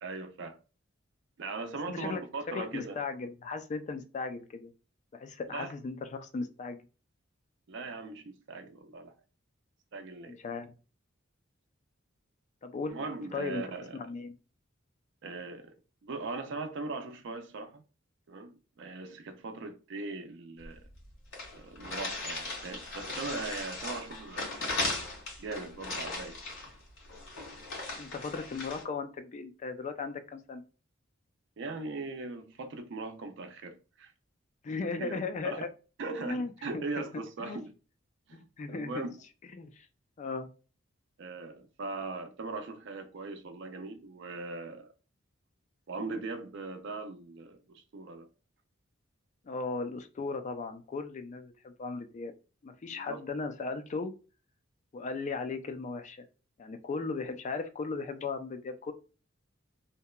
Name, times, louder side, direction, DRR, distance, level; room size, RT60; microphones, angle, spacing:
voice 1, 0.0-0.6 1.4-3.0 5.5-5.7 7.7-9.1 9.9-10.4 12.9-14.0 15.2-15.8 16.0-17.8 18.3-20.8 21.5-24.9 25.4-26.4 31.6-34.1 35.0-35.7 36.0-37.7 38.3-39.1 41.2-44.9 45.9-48.3 52.9-53.2, right 3 dB, 65° right, 0.4 m, -40 dB
voice 2, 1.9-2.2 2.5-4.7 5.1-6.8 10.3-10.7 12.6-12.9 13.3-13.6 13.9-14.3 28.0-30.6 34.6-35.7 36.2-36.8 37.4-37.6 38.3-39.1 39.5-39.9 40.2-40.5 49.4-52.3 52.6-54.1 54.9-56.2 56.6-58.9, left 4 dB, 35° left, 0.3 m, -37 dB
sound 1, 20.6-20.7 20.9-21.0 21.3-28.8, left 2 dB, 85° left, 1.5 m, -37 dB
2.8 x 2.1 x 2.2 m
head